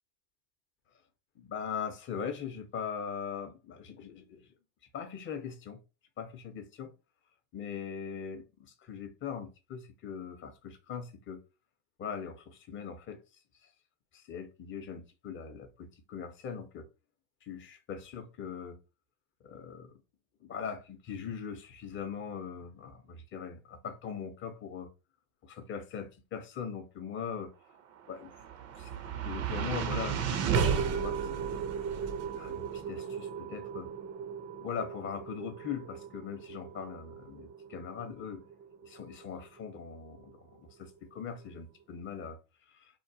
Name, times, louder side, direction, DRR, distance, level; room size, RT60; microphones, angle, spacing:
voice 1, 1.4-4.5 4.9-5.8 6.2-6.9 7.5-8.5 8.9-11.4 12.0-13.2 14.1-16.9 17.5-18.8 19.4-19.9 20.4-24.9 25.4-27.5 28.1-28.3 28.8-28.9 29.2-30.3 30.7-31.4 32.3-33.9 34.6-38.4 38.8-42.4, left 7 dB, 30° left, 0.6 m, -40 dB
sound 1, 28.0-40.3, right 6 dB, 35° right, 0.5 m, -35 dB
3.0 x 2.0 x 2.7 m
supercardioid pair, 100°, 44 cm